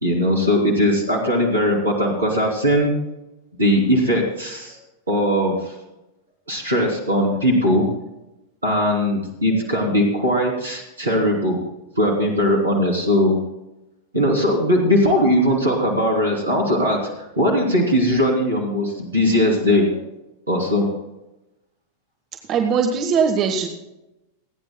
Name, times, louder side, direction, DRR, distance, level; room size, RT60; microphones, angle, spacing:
voice 1, 0.0-2.9 3.6-4.8 5.1-5.7 6.5-7.9 8.6-11.6 12.0-13.4 14.1-20.0 20.5-20.9, equal, 75° right, 0 dB, 3.2 m, -19 dB
voice 2, 22.5-23.7, right 6 dB, 35° right, 5 dB, 1.2 m, -20 dB
28.5 x 9.6 x 2.3 m, 0.95 s
figure-of-eight pair, 90°, 0 cm